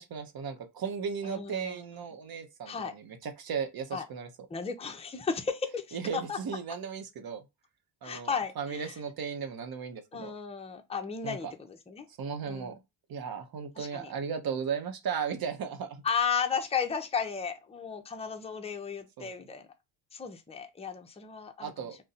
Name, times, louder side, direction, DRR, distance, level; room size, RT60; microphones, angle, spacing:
voice 1, 0.0-4.3 5.9-7.4 8.0-10.3 11.2-11.5 12.2-12.7 13.1-16.0 19.2-19.3 21.6-22.0, right 6 dB, 50° right, 0.9 m, -36 dB
voice 2, 1.2-1.9 2.7-2.9 3.9-4.1 4.5-6.4 8.0-8.9 10.1-12.0 12.5-12.8 13.8-14.1 16.0-19.6 20.1-21.7, left 6 dB, 15° left, 0.6 m, -34 dB
2.6 x 2.2 x 4.0 m
supercardioid pair, 75°, 48 cm